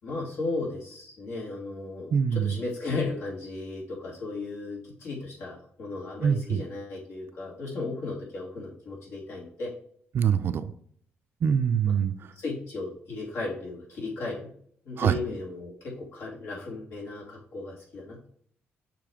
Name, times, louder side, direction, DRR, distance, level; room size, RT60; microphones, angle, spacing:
voice 1, 0.0-9.7 11.9-12.0 12.3-14.5 14.8-18.3, left 3 dB, 75° left, -5 dB, 2.8 m, -35 dB
voice 2, 2.1-2.6 6.2-6.6 10.1-10.7 11.4-12.1 15.0-15.2, right 7 dB, 55° right, 11 dB, 0.5 m, -24 dB
6.9 x 3.2 x 4.9 m, 0.63 s
cardioid pair, 105°, 4 cm